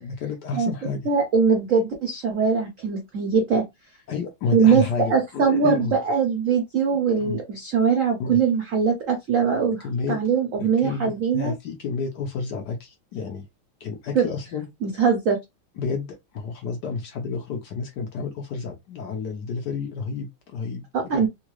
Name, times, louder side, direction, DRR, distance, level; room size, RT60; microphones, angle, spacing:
voice 1, 0.0-1.1 4.1-6.0 6.9-7.4 8.2-8.4 9.8-10.2 10.6-13.4 13.8-14.6 15.8-16.1 16.3-20.8 21.1-21.3, left 5 dB, 65° left, 1.2 m, -30 dB
voice 2, 1.0-3.6 4.5-4.8 5.1-11.5 14.1-14.3 14.8-15.4 20.9-21.3, right 6 dB, 75° right, 0.7 m, -21 dB
3.7 x 2.3 x 3.0 m
omnidirectional pair, 2.3 m